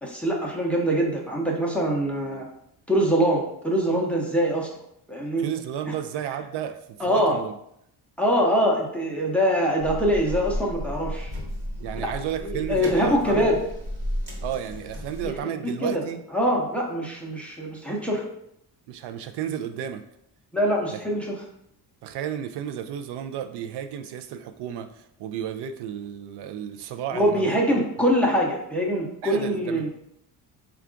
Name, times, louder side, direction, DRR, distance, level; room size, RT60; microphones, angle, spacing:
voice 1, 0.0-2.5 2.9-4.7 5.1-5.5 7.0-7.4 8.2-11.3 12.4-13.6 15.2-15.3 15.8-16.0 16.3-18.2 20.5-21.4 27.1-29.9, equal, 5° left, -2 dB, 0.5 m, -23 dB
voice 2, 5.4-7.5 11.8-13.5 14.4-16.2 18.9-20.0 20.9-21.0 22.0-27.7 29.2-29.9, right 9 dB, 80° right, 8 dB, 0.5 m, -33 dB
sound 1, 9.8-15.4, equal, 30° right, 1.1 m, -33 dB
4.5 x 2.4 x 3.7 m, 0.75 s
cardioid pair, 165°, 40 cm